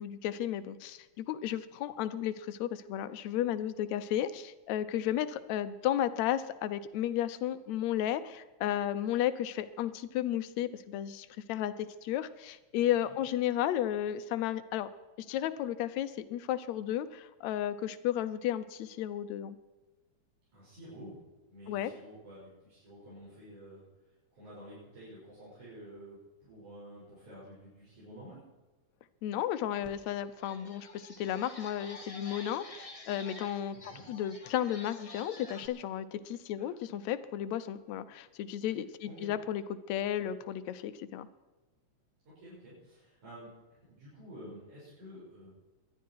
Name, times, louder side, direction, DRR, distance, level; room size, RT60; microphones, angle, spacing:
voice 1, 0.0-14.9 15.2-19.6 21.7-21.9 29.2-33.8 34.1-39.6 39.9-41.3, left 11 dB, 75° left, 13 dB, 2.0 m, -33 dB
voice 2, 20.5-23.8 24.3-28.4 29.7-29.8 33.7-34.0 36.6-36.7 39.0-39.3 42.3-45.5, equal, 85° right, -9 dB, 7.5 m, -50 dB
sound 1, 29.8-29.9 30.3-35.7, left 2 dB, 20° left, 1.0 m, -49 dB
19.5 x 12.0 x 4.7 m, 1.2 s
omnidirectional pair, 3.4 m